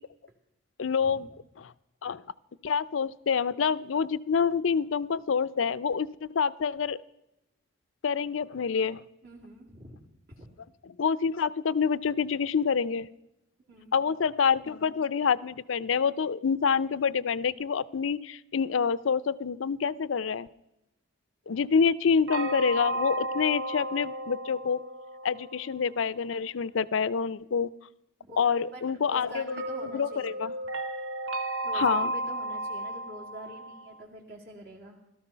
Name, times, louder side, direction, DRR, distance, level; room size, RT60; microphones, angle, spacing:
voice 1, 0.8-1.3 1.6-1.7 2.0-2.2 2.6-7.0 8.0-9.0 10.8-13.1 13.9-20.5 21.5-24.8 25.2-27.7 28.4-29.5 29.8-30.5 31.7-32.1, left 6 dB, 80° left, 18 dB, 0.5 m, -27 dB
voice 2, 9.2-10.0 10.3-10.5 13.6-14.1 28.3-30.5 31.6-35.0, right 1 dB, 55° right, -2 dB, 2.4 m, -46 dB
sound 1, 22.3-25.9 29.5-34.0, right 1 dB, 80° right, 1.3 m, -34 dB
17.0 x 13.5 x 5.6 m, 0.88 s
head